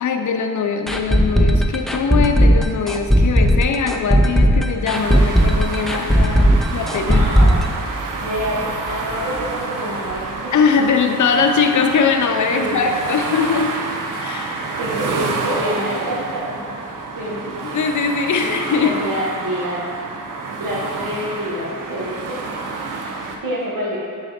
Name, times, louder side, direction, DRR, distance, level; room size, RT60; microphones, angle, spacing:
voice 1, 0.0-7.5 10.5-13.8 14.2-14.6 17.5-19.0, left 5 dB, 60° left, 5 dB, 0.6 m, -21 dB
sound 1, 0.9-8.6 8.9-9.0 9.4-9.5, equal, ahead, 0.4 m, -15 dB
sound 2, 4.9-23.4, right 3 dB, 70° right, 0.7 m, -29 dB
voice 2, 7.1-7.6 8.2-8.6 8.9-10.5 12.5-12.8 14.8-16.6 17.1-17.4 18.4-19.9 20.6-22.4 23.4-24.0, equal, 85° right, -6 dB, 1.5 m, -26 dB
6.2 x 4.0 x 4.2 m, 2.2 s
cardioid pair, 80°, 33 cm